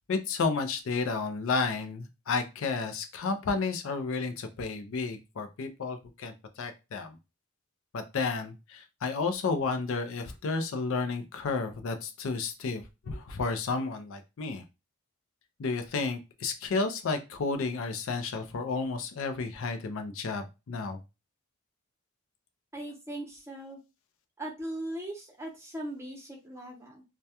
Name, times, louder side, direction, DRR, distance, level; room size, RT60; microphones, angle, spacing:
voice 1, 0.1-7.2 7.9-14.6 15.6-21.0, left 4 dB, 65° left, 8 dB, 0.4 m, -32 dB
voice 2, 22.7-23.8 24.4-27.0, right 1 dB, 15° right, -1 dB, 0.7 m, -39 dB
2.2 x 2.1 x 2.7 m, 0.26 s
head